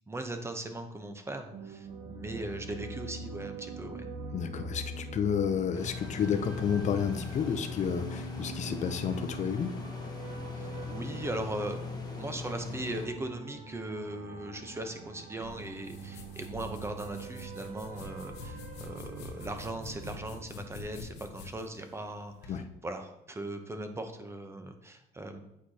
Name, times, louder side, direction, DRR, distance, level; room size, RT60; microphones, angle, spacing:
voice 1, 0.1-4.1 10.5-11.9 12.2-25.4, right 1 dB, 15° right, 6 dB, 0.8 m, -39 dB
sound 1, 1.5-20.4, right 3 dB, 50° right, 0.9 m, -44 dB
voice 2, 4.3-9.7 22.5-22.6, left 7 dB, 45° left, 9 dB, 0.6 m, -31 dB
sound 2, 5.7-13.1, left 4 dB, 25° left, 1.1 m, -40 dB
sound 3, 15.4-22.6, left 4 dB, 90° left, 1.0 m, -47 dB
8.4 x 4.8 x 2.9 m, 0.82 s
cardioid pair, 110°, 17 cm